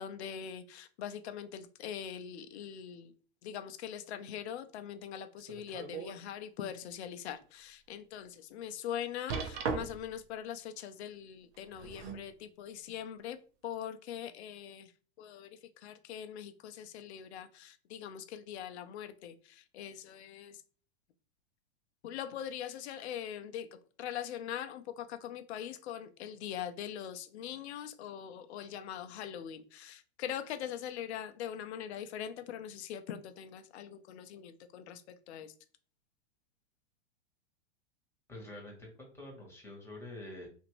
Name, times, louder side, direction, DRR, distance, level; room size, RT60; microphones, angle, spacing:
voice 1, 0.0-3.1 3.4-13.4 13.6-14.9 15.2-20.6 22.0-35.5, left 9 dB, 70° left, 0.6 m, -42 dB
sound 1, 5.4-6.2 6.7-6.8 7.4-7.5 9.3-10.2 11.5-12.3 13.2-13.3, right 5 dB, 60° right, 0.8 m, -38 dB
voice 2, 38.3-40.5, left 1 dB, 5° left, 1.2 m, -47 dB
2.8 x 2.6 x 3.0 m
hypercardioid pair, 115°, 35 cm